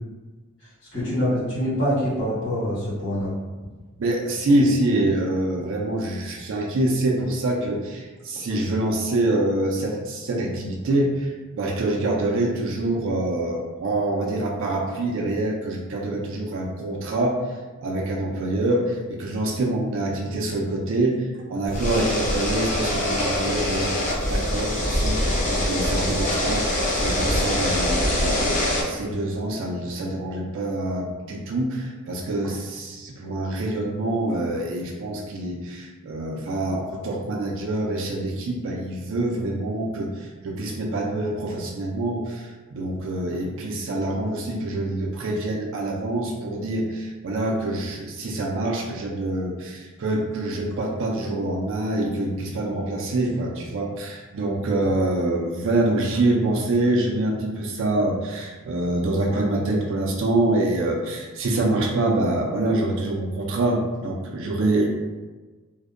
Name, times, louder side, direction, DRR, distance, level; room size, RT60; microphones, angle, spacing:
voice 1, 0.6-3.3, equal, 60° left, -9 dB, 1.4 m, -25 dB
voice 2, 4.0-64.9, right 2 dB, 60° right, -1 dB, 0.4 m, -25 dB
sound 1, 21.7-28.8, left 1 dB, 35° left, 0.5 m, -24 dB
2.6 x 2.1 x 2.4 m, 1.3 s
head